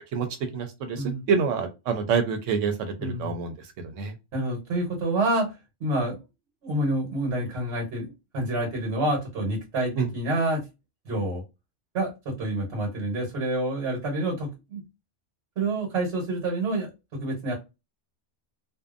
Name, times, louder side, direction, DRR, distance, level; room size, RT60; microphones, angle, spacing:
voice 1, 0.5-3.5 3.8-4.1 10.0-10.1, right 6 dB, 90° right, 6 dB, 1.0 m, -27 dB
voice 2, 3.0-3.3 4.3-5.5 5.8-6.2 6.6-10.6 11.0-11.4 11.9-14.8 15.6-17.5, right 1 dB, 65° right, 0 dB, 1.2 m, -28 dB
2.7 x 2.2 x 2.4 m, 0.25 s
omnidirectional pair, 1.3 m